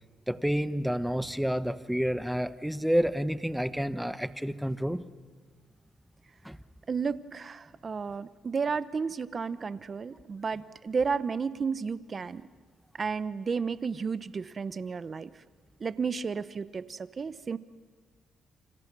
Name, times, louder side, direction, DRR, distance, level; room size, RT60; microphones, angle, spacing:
voice 1, 0.3-5.0 6.4-6.6, equal, ahead, 12 dB, 1.1 m, -29 dB
voice 2, 6.9-12.4 13.0-15.3 15.8-17.6, right 5 dB, 40° right, 15 dB, 0.9 m, -32 dB
29.0 x 26.5 x 6.2 m, 1.5 s
cardioid pair, 90°, 0 cm